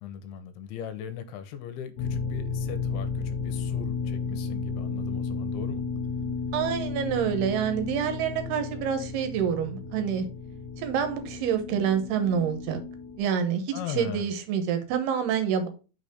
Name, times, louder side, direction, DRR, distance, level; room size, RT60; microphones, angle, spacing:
voice 1, 0.0-5.8 13.7-14.3, left 9 dB, 80° left, 2.6 m, -39 dB
sound 1, 2.0-13.2, left 4 dB, 55° left, 2.6 m, -33 dB
voice 2, 6.5-10.3 10.8-12.8 13.2-15.7, right 8 dB, 80° right, 3.0 m, -27 dB
6.1 x 4.1 x 5.0 m
omnidirectional pair, 4.7 m